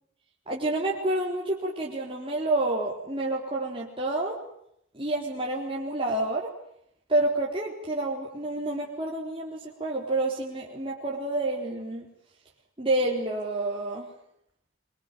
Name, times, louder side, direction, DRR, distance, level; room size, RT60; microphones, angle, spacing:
voice 1, 0.5-4.4 4.9-6.5 7.1-12.1 12.8-14.1, right 2 dB, 25° right, -3 dB, 4.0 m, -29 dB
26.0 x 24.0 x 9.3 m, 0.74 s
head